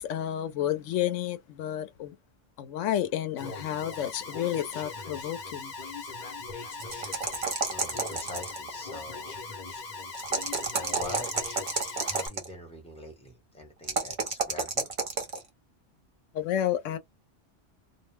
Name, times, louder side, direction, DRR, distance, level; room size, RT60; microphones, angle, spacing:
voice 1, 0.0-2.2 2.6-5.7 16.3-17.0, left 11 dB, 90° left, 0.9 m, -31 dB
Alarm, 3.4-12.3, left 3 dB, 45° left, 0.8 m, -40 dB
sound 1, 6.8-8.7 10.1-12.5 13.8-15.4, right 4 dB, 35° right, 0.6 m, -30 dB
voice 2, 7.7-9.4 10.7-11.3 12.0-14.9, left 1 dB, 5° left, 0.8 m, -43 dB
2.3 x 2.1 x 3.1 m
omnidirectional pair, 1.2 m